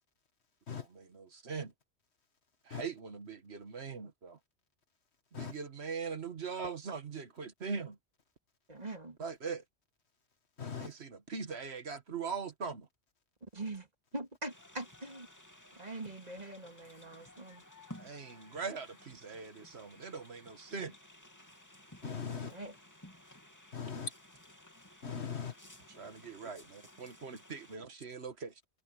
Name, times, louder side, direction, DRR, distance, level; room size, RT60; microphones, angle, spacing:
voice 1, 1.0-1.7 2.7-4.4 5.4-8.0 9.2-9.6 10.8-12.9 18.0-20.9 26.0-28.5, right 5 dB, 80° right, 1.8 m, -41 dB
voice 2, 8.7-9.2 13.4-13.9 14.1-15.3 15.8-17.6 22.5-22.7, right 2 dB, 40° right, 2.6 m, -43 dB
voice 3, 10.6-10.9 22.0-22.5 23.7-24.1 25.0-25.6, left 6 dB, 80° left, 2.0 m, -39 dB
sound 1, 14.5-27.8, left 1 dB, 15° left, 2.8 m, -56 dB
omnidirectional pair, 1.1 m